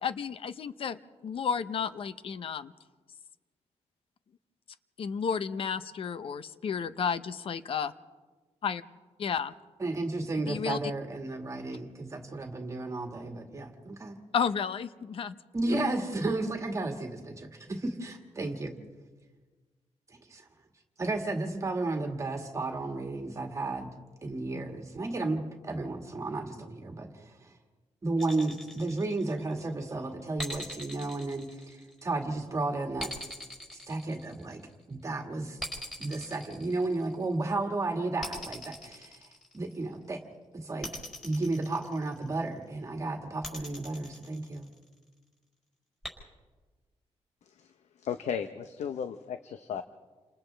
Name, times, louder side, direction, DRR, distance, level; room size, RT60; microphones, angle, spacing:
voice 1, 0.0-2.7 5.0-7.9 8.6-8.8 9.2-9.5 10.5-10.8 14.3-15.4, left 6 dB, 55° left, 13 dB, 0.7 m, -32 dB
voice 2, 9.8-14.2 15.5-18.8 20.3-20.5 21.0-23.9 24.2-27.5 28.0-33.1 33.7-34.6 34.9-35.6 36.0-39.2 39.5-40.2 40.5-40.9 41.2-44.7, right 2 dB, 25° right, 3 dB, 1.9 m, -33 dB
sound 1, 28.2-29.6 30.4-32.2 33.0-34.7 35.6-37.3 38.2-39.9 40.8-42.4 43.4-44.9 46.0-46.1, left 1 dB, 5° left, 5.1 m, -41 dB
voice 3, 48.0-49.8, left 7 dB, 90° left, 9 dB, 0.8 m, -35 dB
29.0 x 27.0 x 3.4 m, 1.3 s
wide cardioid pair, 150°, 11 cm